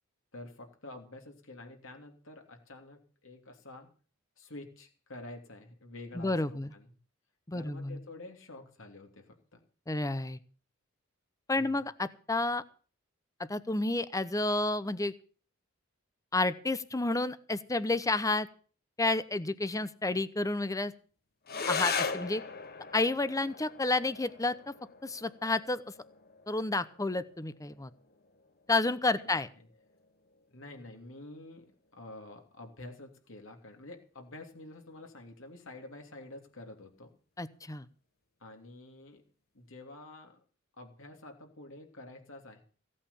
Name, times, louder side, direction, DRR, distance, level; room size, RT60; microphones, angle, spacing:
voice 1, 0.3-3.9 4.4-7.0 7.5-9.6 11.6-11.8 29.2-29.7 30.5-31.6 31.9-37.1 38.4-39.2 39.5-40.4 40.8-42.6, left 2 dB, 70° left, 3 dB, 3.1 m, -48 dB
voice 2, 6.1-6.7 7.5-8.0 9.9-10.4 11.5-12.6 13.5-15.1 16.3-18.5 19.0-20.9 21.7-22.4 22.9-24.7 25.0-25.9 26.5-27.9 28.7-29.5 37.4-37.9, left 2 dB, 15° left, 15 dB, 0.8 m, -30 dB
sound 1, 21.4-30.4, left 5 dB, 50° left, 1.3 m, -39 dB
16.0 x 8.6 x 7.0 m, 0.41 s
head